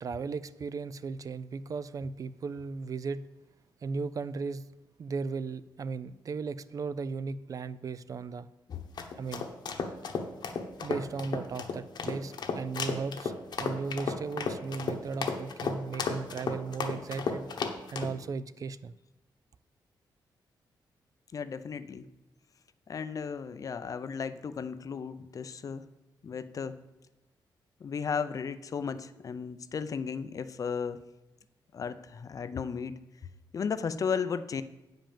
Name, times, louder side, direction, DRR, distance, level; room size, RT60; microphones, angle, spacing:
voice 1, 0.0-3.2 3.8-4.6 5.0-8.5 9.2-9.5 10.8-13.3 13.6-17.5 17.9-19.0, right 4 dB, 45° right, 15 dB, 0.4 m, -36 dB
sound 1, 8.7-18.1, left 5 dB, 60° left, 1.1 m, -34 dB
voice 2, 21.3-22.1 22.9-25.9 26.2-26.8 27.8-31.0 31.7-33.0 33.5-34.6, left 6 dB, 45° left, 13 dB, 0.5 m, -34 dB
8.8 x 5.2 x 7.4 m, 0.99 s
wide cardioid pair, 130°, 8 cm